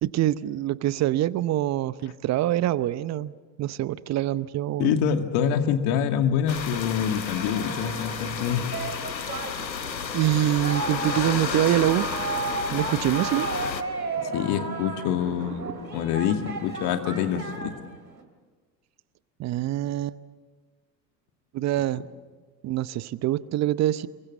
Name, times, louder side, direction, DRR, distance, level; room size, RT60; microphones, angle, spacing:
voice 1, 0.0-5.0 10.1-12.1 12.7-13.5 19.4-20.2 21.5-22.0 22.6-24.1, right 14 dB, 35° right, 18 dB, 0.8 m, -25 dB
voice 2, 4.8-8.6 14.3-17.8, left 8 dB, 50° left, 6 dB, 2.4 m, -26 dB
sound 1, 6.5-13.8, left 6 dB, 90° left, 1.1 m, -32 dB
Singing, 7.2-18.2, right 4 dB, 90° right, 2.8 m, -34 dB
Thunder, 11.9-17.7, right 5 dB, 60° right, 7.8 m, -45 dB
28.0 x 23.0 x 7.4 m, 1.4 s
figure-of-eight pair, 75°, 50 cm